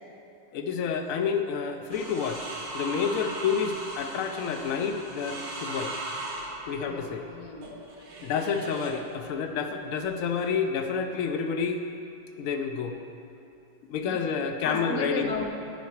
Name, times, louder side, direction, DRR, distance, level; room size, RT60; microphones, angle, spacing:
voice 1, 0.5-5.9 6.7-7.3 8.2-11.8 12.4-13.0 13.9-15.4, left 6 dB, 85° left, 5 dB, 0.7 m, -29 dB
sound 1, 1.9-9.0 10.0-10.6, right 2 dB, 75° right, 1.9 m, -38 dB
voice 2, 6.9-7.8 14.0-14.1 14.6-15.5, left 4 dB, 55° left, 2 dB, 1.2 m, -35 dB
13.5 x 4.7 x 4.6 m, 2.6 s
omnidirectional pair, 2.0 m